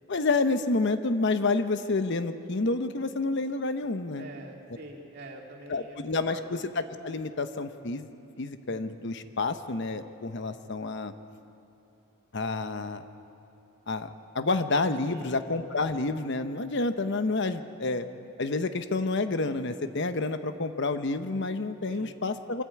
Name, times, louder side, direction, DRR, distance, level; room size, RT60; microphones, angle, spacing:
voice 1, 0.1-4.3 5.7-8.1 8.4-11.1 12.3-13.0 13.9-18.1 18.4-22.6, left 3 dB, 55° left, 10 dB, 0.8 m, -29 dB
voice 2, 4.2-6.5 15.0-15.4 21.9-22.2, right 1 dB, 50° right, 1 dB, 2.5 m, -45 dB
24.5 x 14.0 x 8.5 m, 2.7 s
head